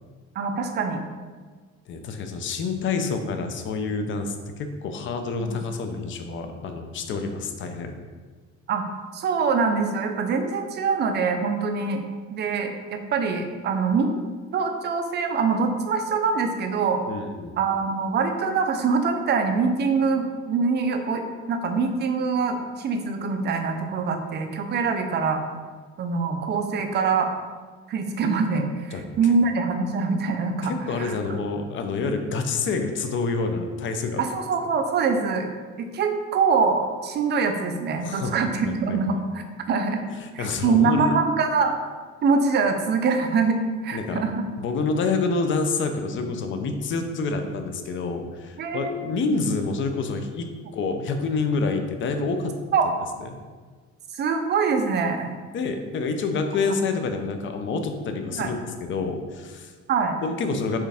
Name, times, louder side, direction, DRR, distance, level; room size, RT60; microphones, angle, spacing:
voice 1, 0.4-1.0 5.4-5.5 8.7-8.8 9.1-12.0 12.3-14.2 14.5-17.0 17.6-21.2 21.5-25.4 26.0-27.3 27.9-31.1 34.2-35.5 35.8-40.0 40.3-41.8 42.2-43.6 43.8-44.4 46.2-46.3 48.6-49.0 52.7-52.9 54.1-55.3 58.3-58.5 59.9-60.2, right 5 dB, 35° right, 5 dB, 0.4 m, -24 dB
voice 2, 1.9-7.9 17.1-17.5 28.9-29.3 30.6-34.2 38.0-39.0 40.2-41.2 43.9-44.2 44.6-52.5 53.2-53.3 55.5-58.6 58.9-59.7 60.2-60.8, left 4 dB, 45° left, 6 dB, 0.4 m, -28 dB
4.5 x 3.5 x 3.4 m, 1.5 s
cardioid pair, 170°, 29 cm